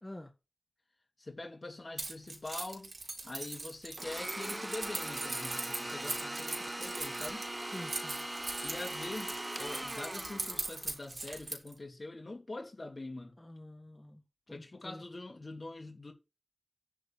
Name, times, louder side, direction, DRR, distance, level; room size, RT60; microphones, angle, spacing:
voice 1, 1.2-2.9 3.2-7.5 8.6-13.3 14.5-16.1, left 2 dB, 60° left, 3.0 m, -44 dB
Keys jangling, 2.0-11.7, right 2 dB, 90° right, 3.4 m, -40 dB
Domestic sounds home sounds, 4.0-11.0, right 1 dB, 30° right, 0.6 m, -40 dB
voice 2, 7.7-8.3 13.4-14.2 14.5-15.0, left 1 dB, 25° left, 1.7 m, -47 dB
10.0 x 4.2 x 7.2 m
wide cardioid pair, 60°, 0 cm